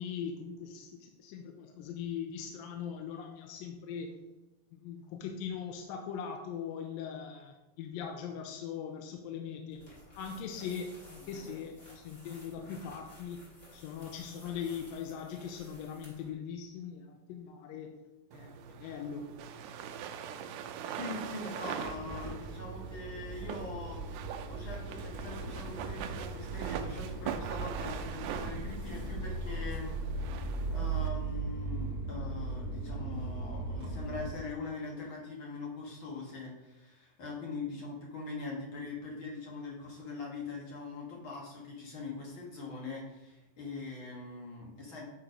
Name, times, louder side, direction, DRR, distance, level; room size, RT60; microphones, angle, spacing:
voice 1, 0.0-4.1 4.7-9.8 10.2-13.4 13.7-17.9 18.3-19.3, left 7 dB, 80° left, 3 dB, 2.4 m, -40 dB
sound 1, 9.7-16.3, left 1 dB, 20° left, 2.6 m, -54 dB
sound 2, 18.3-31.1, right 8 dB, 80° right, 1.9 m, -42 dB
voice 2, 21.0-24.0 24.4-29.9 30.7-45.0, left 3 dB, 45° left, -2 dB, 1.7 m, -42 dB
Motor vehicle (road) / Engine starting, 21.8-34.3, right 3 dB, 30° right, 0.8 m, -38 dB
8.8 x 4.5 x 5.0 m, 1.0 s
omnidirectional pair, 4.2 m